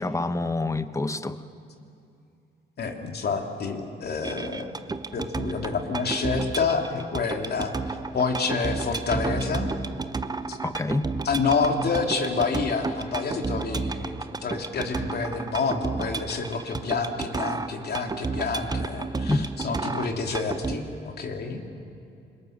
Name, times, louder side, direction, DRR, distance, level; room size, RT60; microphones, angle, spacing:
voice 1, 0.0-1.4 10.6-11.1 19.3-19.5, left 2 dB, 15° left, 12 dB, 1.0 m, -27 dB
voice 2, 2.8-4.7 5.1-9.7 10.5-10.6 11.2-21.6, left 4 dB, 55° left, 3 dB, 2.7 m, -28 dB
sound 1, 4.2-20.8, right 3 dB, 20° right, 0.8 m, -32 dB
27.0 x 22.5 x 6.6 m, 2.6 s
cardioid pair, 90°, 20 cm